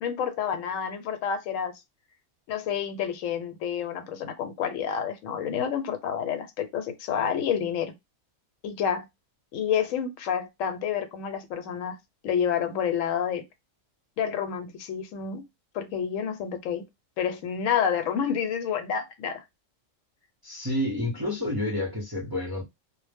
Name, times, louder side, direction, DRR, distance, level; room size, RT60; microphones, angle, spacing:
voice 1, 0.0-1.7 2.5-7.9 8.6-9.1 9.5-12.0 12.2-13.4 14.2-15.4 15.7-16.9 17.2-19.4, left 8 dB, 80° left, 1.0 m, -29 dB
voice 2, 20.4-22.6, left 1 dB, 25° right, 0.6 m, -29 dB
2.1 x 2.1 x 3.3 m
omnidirectional pair, 1.4 m